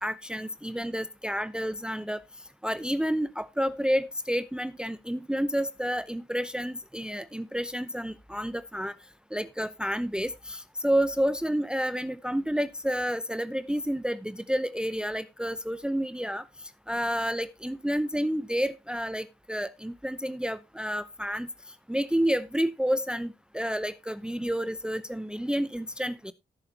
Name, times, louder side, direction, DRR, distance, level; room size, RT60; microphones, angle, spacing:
voice 1, 0.0-2.2 2.6-9.0 9.3-16.4 16.9-21.5 21.9-26.3, equal, 5° right, 0.7 m, -30 dB
17.5 x 6.7 x 2.8 m
cardioid pair, 55°, 18 cm